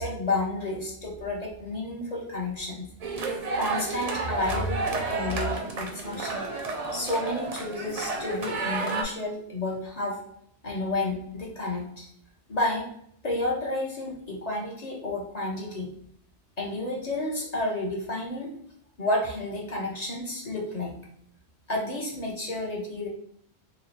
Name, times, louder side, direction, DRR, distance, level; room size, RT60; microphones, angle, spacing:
voice 1, 0.0-2.9 3.5-6.5 6.9-10.2 10.6-12.1 12.5-12.9 13.2-15.9 16.6-18.5 19.0-20.9 21.7-23.1, left 2 dB, 40° left, -3 dB, 0.8 m, -31 dB
sound 1, 3.0-9.0, right 3 dB, 45° right, 0.5 m, -31 dB
3.0 x 2.0 x 4.0 m, 0.69 s
omnidirectional pair, 1.1 m